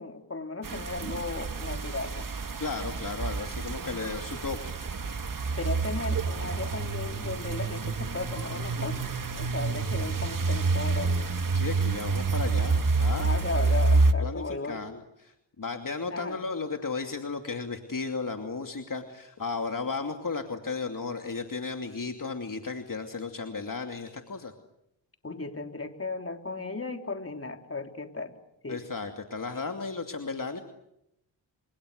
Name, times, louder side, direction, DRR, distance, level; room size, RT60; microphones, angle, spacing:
voice 1, 0.0-2.3 3.8-4.1 5.6-9.0 9.4-11.3 13.2-14.8 16.1-16.5 25.2-28.3 28.6-28.8, left 3 dB, 30° left, 5 dB, 3.5 m, -36 dB
sound 1, 0.6-14.1, right 3 dB, 45° right, 1.9 m, -28 dB
voice 2, 2.6-4.7 11.5-13.4 14.2-24.5 28.7-30.6, left 4 dB, 45° left, 4 dB, 2.7 m, -34 dB
29.5 x 28.0 x 6.7 m, 0.83 s
cardioid pair, 70°, 43 cm